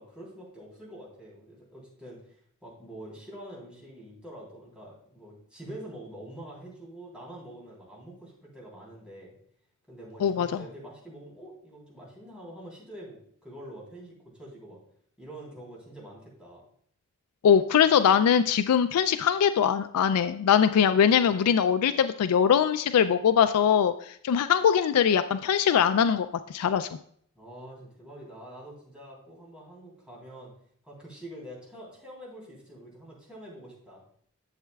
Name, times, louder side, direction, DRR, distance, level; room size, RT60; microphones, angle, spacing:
voice 1, 0.0-2.4 2.6-9.4 9.9-14.8 15.2-16.6 27.4-30.5 30.8-34.0, right 1 dB, 5° right, -5 dB, 3.4 m, -45 dB
voice 2, 17.4-26.9, left 8 dB, 80° left, 11 dB, 0.3 m, -22 dB
11.5 x 7.3 x 2.3 m, 0.65 s
head